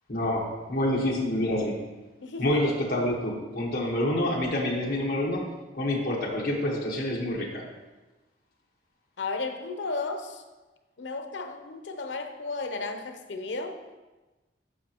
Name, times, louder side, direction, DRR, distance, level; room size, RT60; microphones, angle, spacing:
voice 1, 0.1-1.8 2.4-5.5 5.7-7.6, left 1 dB, 55° left, -2 dB, 1.3 m, -27 dB
voice 2, 2.2-2.6 9.2-10.4 11.0-13.8, left 3 dB, 85° left, 6 dB, 0.7 m, -34 dB
11.5 x 5.3 x 3.0 m, 1.2 s
head